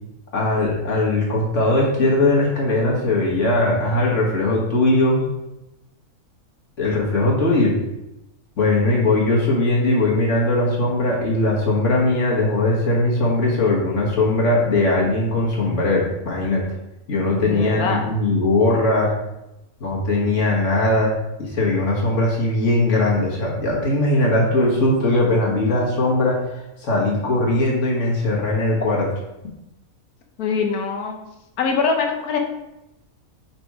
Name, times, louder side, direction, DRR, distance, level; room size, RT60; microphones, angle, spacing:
voice 1, 0.3-5.3 6.8-7.7 8.6-16.6 17.1-19.1 19.8-29.1, left 2 dB, 55° left, -3 dB, 1.7 m, -20 dB
voice 2, 17.5-18.1 30.4-31.2 31.6-32.4, left 5 dB, 80° left, 3 dB, 1.3 m, -23 dB
5.2 x 4.2 x 4.7 m, 0.92 s
omnidirectional pair, 1.5 m